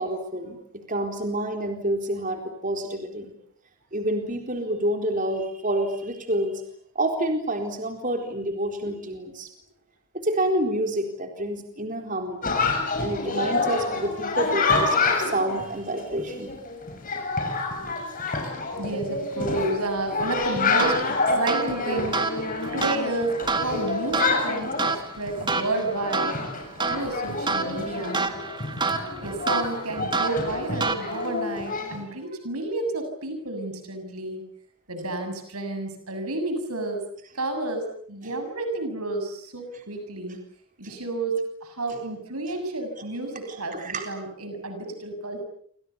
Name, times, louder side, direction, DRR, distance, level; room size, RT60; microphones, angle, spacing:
voice 1, 0.0-3.3 3.9-6.6 6.9-9.5 10.1-12.5 13.0-16.5 38.2-38.3 40.8-41.0 42.5-42.6 43.5-44.1, right 1 dB, 35° right, 5 dB, 4.0 m, -28 dB
Chatter, 12.4-32.0, left 3 dB, 35° left, 7.1 m, -28 dB
voice 2, 18.8-22.2 22.7-26.4 26.9-28.3 29.2-34.5 34.9-37.0 37.4-40.4 40.8-45.4, right 2 dB, 85° right, 7 dB, 7.0 m, -31 dB
sound 1, 20.8-31.4, right 4 dB, 20° right, 1.9 m, -29 dB
29.0 x 26.0 x 7.0 m, 0.64 s
head